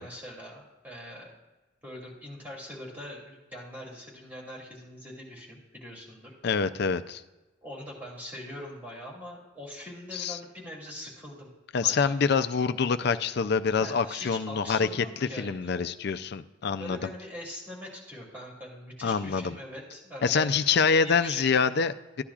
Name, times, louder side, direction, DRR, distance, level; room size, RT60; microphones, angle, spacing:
voice 1, 0.0-1.3 1.8-6.3 7.6-11.5 11.8-12.1 13.8-15.7 16.8-20.6 21.0-21.7, left 1 dB, 10° right, -4 dB, 2.7 m, -42 dB
voice 2, 6.4-7.2 10.1-10.4 11.7-15.1 15.3-17.1 19.0-19.6 20.2-22.2, left 5 dB, 60° left, 11 dB, 0.4 m, -26 dB
14.0 x 10.0 x 2.4 m, 1.1 s
head